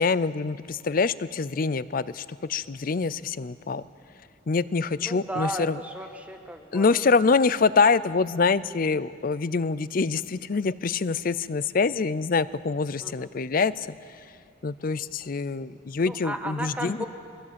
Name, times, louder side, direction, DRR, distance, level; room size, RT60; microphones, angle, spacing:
voice 1, 0.0-3.8 4.5-5.8 6.7-13.7 14.6-17.0, left 4 dB, 45° left, 17 dB, 0.5 m, -25 dB
voice 2, 5.0-7.0 13.0-13.3 16.0-17.1, right 1 dB, 5° right, 5 dB, 1.3 m, -35 dB
23.0 x 16.5 x 7.6 m, 2.3 s
head